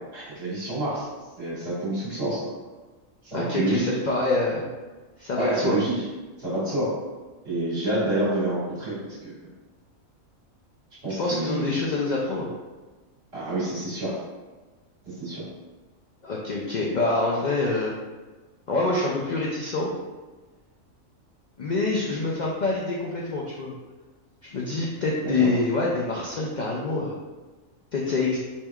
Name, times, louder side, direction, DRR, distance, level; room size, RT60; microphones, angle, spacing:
voice 1, 0.1-1.1 1.4-2.4 3.2-3.8 5.4-5.9 6.4-6.9 7.4-9.3 11.0-11.7 13.3-14.2 15.1-15.4 25.2-25.5, right 2 dB, 50° right, -9 dB, 1.8 m, -28 dB
voice 2, 3.3-4.7 5.2-5.8 11.2-12.5 16.2-17.9 18.7-19.9 21.6-23.7 24.5-27.1 27.9-28.4, left 3 dB, 80° left, -3 dB, 0.4 m, -26 dB
4.4 x 3.3 x 2.3 m, 1.3 s
omnidirectional pair, 1.4 m